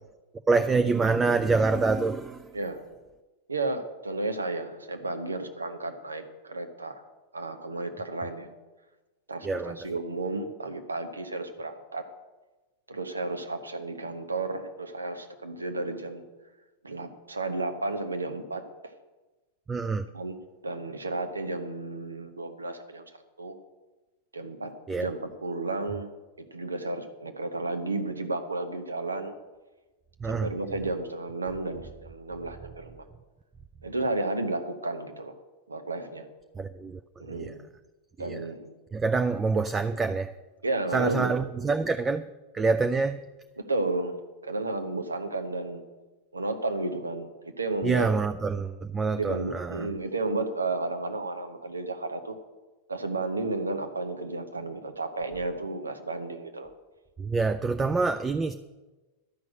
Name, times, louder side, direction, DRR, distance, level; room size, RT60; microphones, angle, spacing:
voice 1, 0.5-2.5 9.4-9.8 19.7-20.1 24.9-25.1 30.2-30.5 36.6-37.5 38.3-38.4 38.9-40.3 40.9-42.2 42.5-43.2 47.8-49.9 57.2-58.5, right 4 dB, 15° right, 0.4 m, -26 dB
voice 2, 3.5-7.0 7.3-8.5 9.3-12.1 12.9-16.2 16.8-18.6 20.1-20.4 20.6-23.0 23.4-23.5 24.3-26.1 26.4-29.3 30.2-33.0 33.8-35.3 35.7-36.3 37.2-37.6 38.2-38.7 40.6-41.3 43.7-45.8 46.3-47.3 47.6-48.1 49.1-52.3 52.9-56.7 58.0-58.1, right 2 dB, 80° right, 1.2 m, -32 dB
11.5 x 6.2 x 8.6 m
figure-of-eight pair, 90°, 0 cm